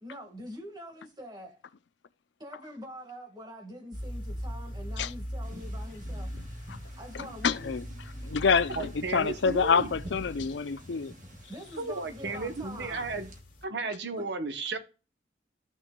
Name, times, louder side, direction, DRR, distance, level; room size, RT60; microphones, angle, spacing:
voice 1, 0.0-1.6 2.4-6.3 6.9-7.8 11.3-13.1 14.1-14.3, equal, 20° right, 1.7 m, -45 dB
sound 1, 3.9-13.6, equal, 45° left, 2.3 m, -41 dB
sound 2, 5.4-13.4, equal, 45° right, 1.7 m, -49 dB
voice 2, 7.1-7.8 8.2-11.1, left 5 dB, 75° left, 0.5 m, -27 dB
voice 3, 8.8-9.9 11.8-13.3 13.6-14.8, right 3 dB, 65° right, 0.9 m, -34 dB
14.0 x 6.2 x 2.3 m
head